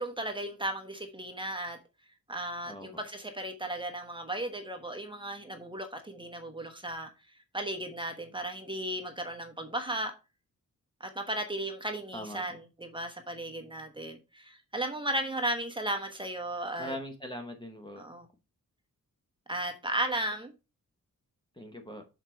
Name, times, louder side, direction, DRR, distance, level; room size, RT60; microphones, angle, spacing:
voice 1, 0.0-1.8 2.3-7.1 7.5-10.1 11.0-17.0 18.0-18.3 19.5-20.5, right 1 dB, 15° right, 1.1 m, -35 dB
voice 2, 12.1-12.4 16.8-18.1 21.6-22.0, left 1 dB, 15° left, 1.0 m, -41 dB
6.6 x 4.8 x 4.5 m
wide cardioid pair, 180°, 34 cm